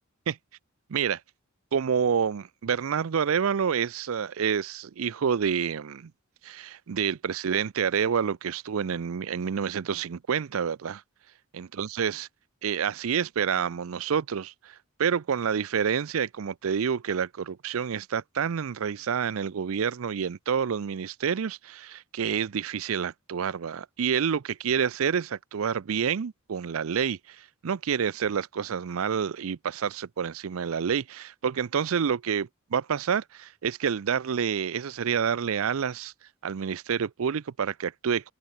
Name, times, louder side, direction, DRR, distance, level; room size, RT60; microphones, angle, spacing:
voice 1, 0.9-1.2 1.7-6.1 6.4-11.0 11.5-12.3 12.6-36.1 36.4-38.3, right 7 dB, 80° right, 0.5 m, -28 dB
open air
head